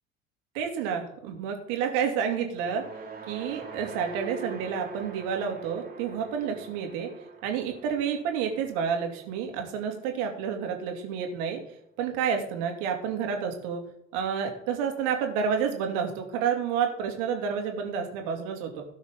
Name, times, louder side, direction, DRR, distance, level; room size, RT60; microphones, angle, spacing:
voice 1, 0.5-2.8 3.3-7.1 7.4-11.6 12.0-13.8 14.1-18.8, right 7 dB, 55° right, 4 dB, 2.5 m, -29 dB
sound 1, 2.5-10.9, right 5 dB, 25° right, 2.3 m, -44 dB
17.0 x 6.4 x 3.6 m, 0.76 s
figure-of-eight pair, 70°, 39 cm